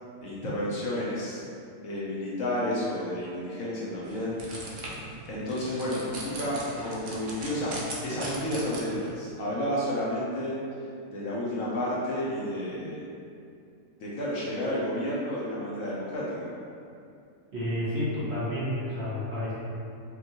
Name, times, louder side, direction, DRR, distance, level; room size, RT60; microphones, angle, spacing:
voice 1, 0.2-1.4 1.8-4.3 5.3-10.6 11.1-13.0 14.0-16.5, left 1 dB, 60° left, -7 dB, 1.1 m, -31 dB
sound 1, 4.0-9.1, right 2 dB, 70° right, 0.4 m, -39 dB
voice 2, 17.5-19.5, left 1 dB, 50° right, -10 dB, 1.0 m, -30 dB
5.2 x 2.5 x 2.9 m, 2.5 s
omnidirectional pair, 1.8 m